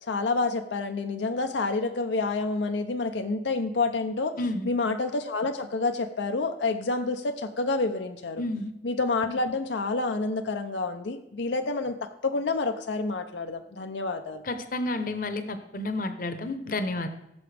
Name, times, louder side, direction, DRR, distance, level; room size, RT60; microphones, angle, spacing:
voice 1, 0.0-4.4 4.6-8.4 8.8-14.4, left 3 dB, 85° left, 6 dB, 0.6 m, -28 dB
voice 2, 4.4-4.7 8.4-8.7 14.4-17.1, left 2 dB, 50° left, 9 dB, 0.9 m, -30 dB
16.0 x 7.0 x 3.4 m, 0.86 s
head